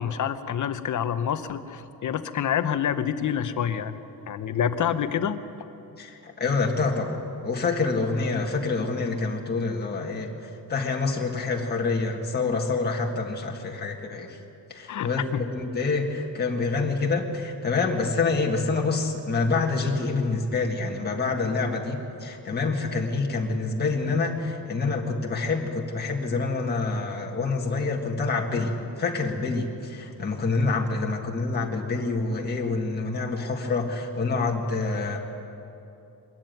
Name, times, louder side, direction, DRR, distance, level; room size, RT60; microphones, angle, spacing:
voice 1, 0.0-4.0 4.3-5.7 14.9-15.4, left 8 dB, 50° left, 11 dB, 0.9 m, -27 dB
voice 2, 6.0-10.3 10.7-14.4 14.7-35.2, left 3 dB, 25° left, 0 dB, 1.7 m, -27 dB
22.0 x 13.5 x 9.2 m, 2.8 s
wide cardioid pair, 170°, 40 cm